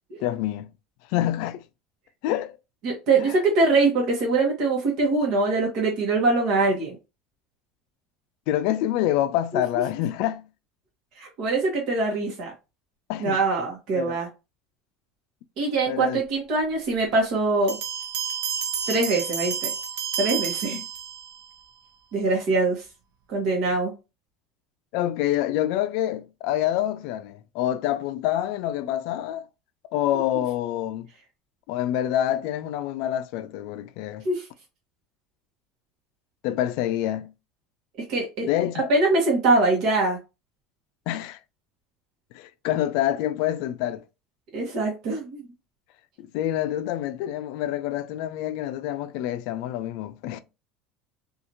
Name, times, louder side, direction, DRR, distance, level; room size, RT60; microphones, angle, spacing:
voice 1, 0.2-0.7 1.1-1.6 2.2-2.6 3.2-3.3 8.5-10.5 13.1-13.4 13.9-14.2 15.9-16.2 20.7-20.8 24.9-29.4 29.9-31.1 31.7-34.3 36.4-37.3 38.4-38.9 41.1-41.4 42.3-44.0 46.2-50.4, left 12 dB, 70° left, 0.3 m, -27 dB
voice 2, 2.8-7.0 9.5-9.6 11.2-12.5 13.2-14.3 15.6-17.8 18.9-19.7 20.2-20.8 22.1-22.8 23.3-23.9 30.3-30.4 34.2-34.5 38.1-38.5 38.9-40.2 44.5-45.4, right 3 dB, 60° right, 1.0 m, -23 dB
sound 1, 17.7-21.5, right 7 dB, 85° right, 0.5 m, -30 dB
2.8 x 2.4 x 2.6 m
supercardioid pair, 125°, 0 cm